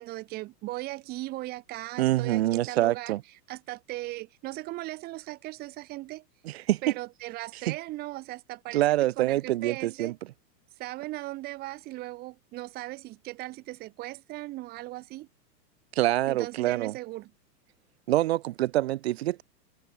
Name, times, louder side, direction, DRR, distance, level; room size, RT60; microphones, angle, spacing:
voice 1, 0.0-3.2 3.5-6.2 6.8-8.8 9.2-10.1 10.8-15.3 16.3-17.3, right 19 dB, 20° right, 1.2 m, -38 dB
voice 2, 2.0-3.2 6.4-6.8 7.6-7.8 8.7-10.1 16.0-16.9 18.1-19.4, right 15 dB, 40° right, 0.6 m, -25 dB
supercardioid pair, 165°, 48 cm